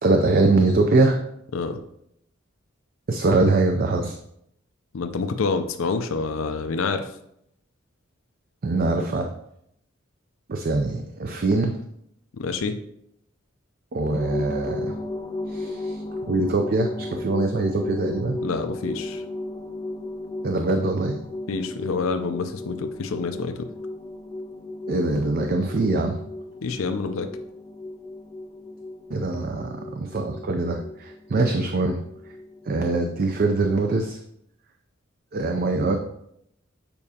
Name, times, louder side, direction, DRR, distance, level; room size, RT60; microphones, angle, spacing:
voice 1, 0.0-1.2 3.1-4.2 8.6-9.3 10.5-11.7 13.9-14.9 15.5-16.0 16.3-18.4 20.4-21.2 24.9-26.2 29.1-32.0 32.7-34.2 35.3-36.0, right 2 dB, 45° right, 5 dB, 0.4 m, -23 dB
voice 2, 4.9-7.1 12.4-12.7 18.4-19.2 21.5-23.7 26.6-27.3, left 4 dB, 80° left, 7 dB, 0.5 m, -27 dB
sound 1, 14.1-33.9, left 2 dB, 15° left, 0.4 m, -35 dB
6.9 x 4.8 x 2.8 m, 0.74 s
head